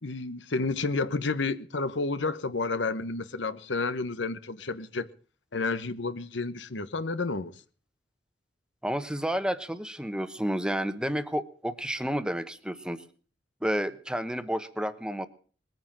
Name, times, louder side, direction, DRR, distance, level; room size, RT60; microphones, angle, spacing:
voice 1, 0.0-5.1 5.5-7.5, left 3 dB, 80° left, 1.1 m, -30 dB
voice 2, 8.8-13.0 13.6-15.3, equal, 5° right, 1.1 m, -30 dB
20.5 x 9.5 x 7.4 m
head